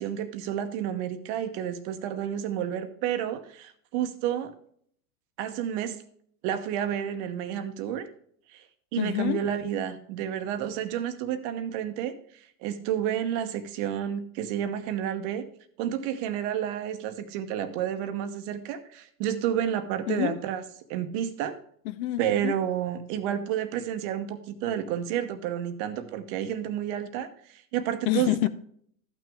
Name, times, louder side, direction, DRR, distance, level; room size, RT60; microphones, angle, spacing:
voice 1, 0.0-4.5 5.4-6.0 6.4-8.1 8.5-8.6 8.9-12.2 12.6-15.4 15.8-20.6 20.9-21.6 22.2-28.3, right 10 dB, 45° right, 0.9 m, -30 dB
voice 2, 8.9-9.4 20.1-20.4 21.8-22.5 28.1-28.5, left 15 dB, 60° left, 0.8 m, -27 dB
13.0 x 6.1 x 3.5 m
supercardioid pair, 135°, 48 cm